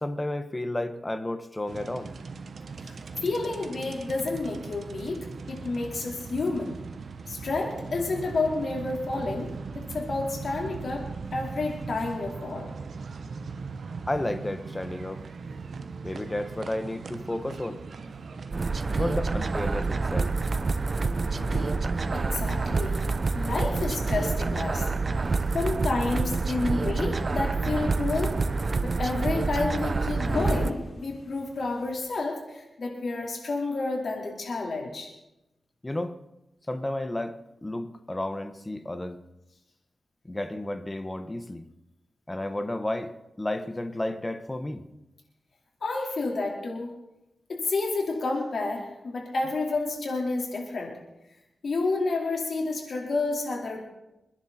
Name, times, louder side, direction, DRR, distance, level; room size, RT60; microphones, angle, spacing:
voice 1, 0.0-2.1 14.1-15.2 16.0-17.8 19.0-20.3 25.2-25.5 35.8-36.1 36.7-39.2 40.3-41.6 42.3-44.8, left 1 dB, 20° left, 9 dB, 1.3 m, -32 dB
sound 1, 1.7-19.9, right 4 dB, 70° right, 1.1 m, -39 dB
voice 2, 3.2-6.8 7.3-11.0 11.3-12.7 22.1-23.0 23.3-24.9 25.5-28.4 28.8-35.1 45.8-46.9 47.5-51.0 51.6-53.8, left 3 dB, 65° left, -1 dB, 4.4 m, -30 dB
sound 2, 18.5-30.7, right 3 dB, 45° right, 0.7 m, -27 dB
sound 3, 20.0-32.1, left 1 dB, 40° left, 3.8 m, -43 dB
28.5 x 10.5 x 4.4 m, 0.94 s
wide cardioid pair, 100°, 0 cm